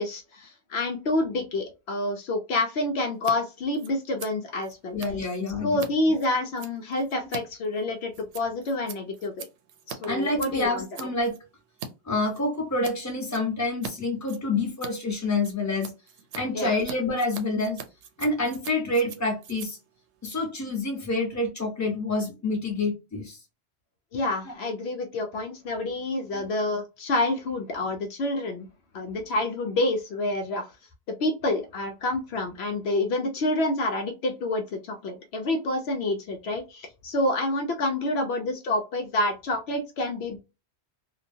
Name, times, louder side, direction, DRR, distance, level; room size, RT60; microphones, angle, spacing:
voice 1, 0.0-5.0 5.6-9.5 9.9-10.9 16.5-16.7 24.1-28.7 28.9-30.7 31.2-40.4, left 2 dB, 70° left, 4 dB, 0.8 m, -28 dB
Scissors, 3.1-3.3 3.6-11.9 12.2-13.0 13.3-13.9 14.2-21.0, right 6 dB, 80° right, 0.9 m, -43 dB
voice 2, 4.9-5.8 10.1-11.3 12.1-15.9 16.3-17.8 18.2-19.8 20.2-23.4 26.3-26.5, left 2 dB, 15° left, 1 dB, 0.9 m, -27 dB
2.9 x 2.2 x 2.6 m, 0.27 s
omnidirectional pair, 1.1 m